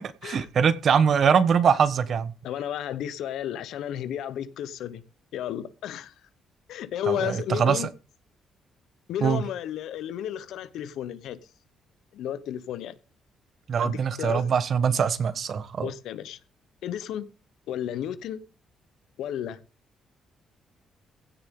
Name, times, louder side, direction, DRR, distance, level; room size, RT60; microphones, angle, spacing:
voice 1, 0.0-2.3 7.1-7.9 9.2-9.4 13.7-15.9, right 7 dB, 55° right, 1.2 m, -23 dB
voice 2, 2.4-5.0 5.3-6.1 6.7-7.9 9.1-11.4 12.1-12.9 13.8-14.4 15.8-16.4 16.8-17.3 17.7-18.4 19.2-19.6, left 10 dB, 80° left, 1.0 m, -33 dB
16.0 x 9.9 x 3.8 m
cardioid pair, 90°, 0 cm